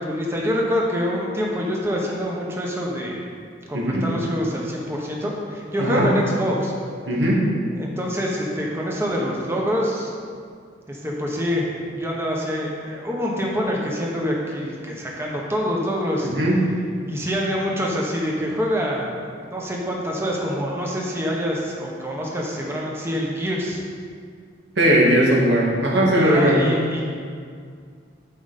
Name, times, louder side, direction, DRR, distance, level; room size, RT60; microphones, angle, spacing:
voice 1, 0.0-3.3 3.7-6.7 7.8-10.1 10.9-16.3 17.1-23.8 26.1-27.0, equal, 15° right, -2 dB, 1.2 m, -26 dB
voice 2, 7.1-7.4 16.2-16.6 24.8-26.7, right 1 dB, 65° right, -4 dB, 1.9 m, -18 dB
11.5 x 5.2 x 4.2 m, 2.2 s
head